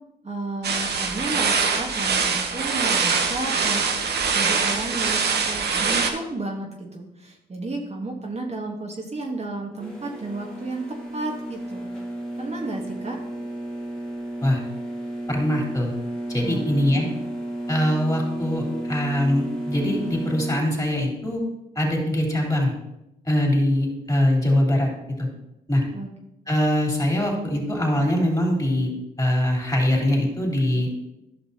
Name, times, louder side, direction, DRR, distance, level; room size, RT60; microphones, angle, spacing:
voice 1, 0.2-3.9 4.3-10.8 11.1-11.9 12.4-13.2 16.4-17.1 25.9-26.1, right 2 dB, 35° right, 0 dB, 1.3 m, -32 dB
sound 1, 0.6-6.1, right 5 dB, 65° right, 1.0 m, -23 dB
sound 2, 9.8-20.6, right 1 dB, 5° left, 1.8 m, -32 dB
voice 2, 15.3-15.9 16.3-17.0 17.7-21.4 21.7-22.7 23.2-24.9 25.2-25.3 25.7-25.8 26.5-28.9 29.2-30.9, left 1 dB, 20° left, -1 dB, 3.3 m, -22 dB
11.5 x 6.0 x 2.8 m, 0.89 s
supercardioid pair, 45°, 18 cm